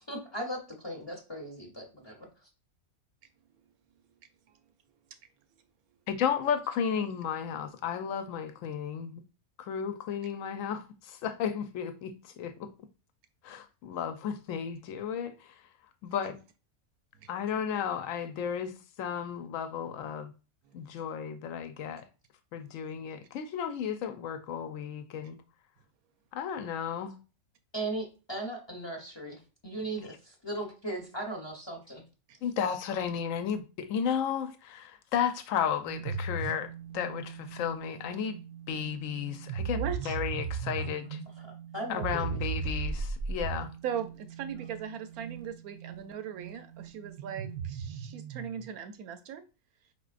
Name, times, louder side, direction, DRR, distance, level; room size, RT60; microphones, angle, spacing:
voice 1, 0.1-2.3 27.7-32.0 40.8-40.9 41.4-42.4, right 1 dB, 20° left, 0.8 m, -38 dB
voice 2, 6.1-9.2 9.6-12.7 13.4-15.6 16.0-16.4 17.3-20.3 20.7-22.1 22.5-25.4 26.3-27.2 32.4-36.7 36.9-38.4 38.7-41.2 41.9-43.7, left 8 dB, 70° left, 1.0 m, -33 dB
sound 1, 35.8-48.7, right 5 dB, 60° right, 0.6 m, -38 dB
voice 3, 39.7-40.2 43.8-49.5, right 8 dB, 90° right, 1.1 m, -39 dB
5.0 x 4.1 x 2.5 m
omnidirectional pair, 1.5 m